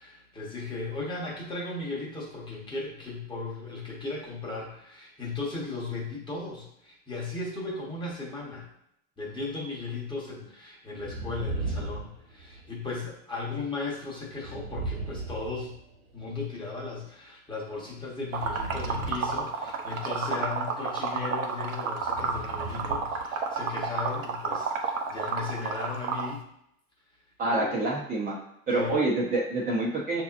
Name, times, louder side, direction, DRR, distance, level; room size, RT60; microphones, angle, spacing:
voice 1, 0.0-8.7 9.2-15.7 16.1-26.4 27.5-27.8 28.7-28.9, left 3 dB, 10° left, -3 dB, 1.1 m, -36 dB
sound 1, 10.9-12.8 14.3-16.2 18.3-20.0 22.0-23.3 23.6-23.7, right 3 dB, 50° right, 1.4 m, -37 dB
Liquid, 18.3-26.3, right 5 dB, 70° right, 0.9 m, -30 dB
voice 2, 27.4-28.3 28.7-30.2, right 2 dB, 20° right, -5 dB, 0.7 m, -27 dB
5.9 x 2.9 x 2.5 m, 0.75 s
hypercardioid pair, 115°, 41 cm